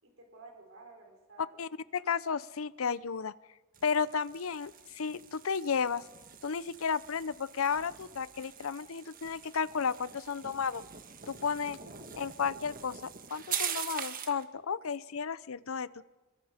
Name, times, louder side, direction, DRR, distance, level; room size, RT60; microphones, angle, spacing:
voice 1, 0.0-1.6 11.6-12.2, right 3 dB, 70° right, 1 dB, 5.7 m, -54 dB
voice 2, 1.6-3.3 3.8-6.0 6.4-10.8 11.3-11.8 12.2-15.9, left 6 dB, 85° left, 18 dB, 0.6 m, -33 dB
Med Speed Skid Crash OS, 3.7-14.4, right 8 dB, 45° right, 1.5 m, -43 dB
27.0 x 23.0 x 5.1 m, 1.2 s
head